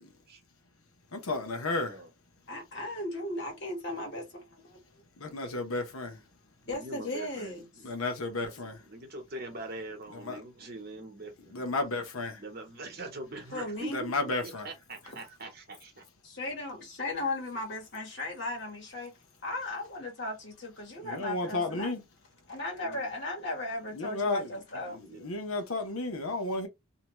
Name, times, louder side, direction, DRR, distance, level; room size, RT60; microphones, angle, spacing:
voice 1, 1.1-2.0 5.2-6.2 7.8-8.7 10.1-10.4 11.5-12.4 13.9-14.7 21.0-22.0 23.9-24.6 24.9-26.7, left 2 dB, 85° left, 0.9 m, -33 dB
voice 2, 2.5-5.0 6.7-7.7 13.5-14.0 15.0-15.1 16.2-19.1 19.4-21.9 22.5-25.0, left 2 dB, 55° left, 1.5 m, -36 dB
voice 3, 6.7-7.9 8.8-11.7 12.4-14.1 14.4-16.0 22.8-23.0 24.7-25.3, right 2 dB, 45° right, 1.0 m, -43 dB
2.8 x 2.2 x 3.0 m
head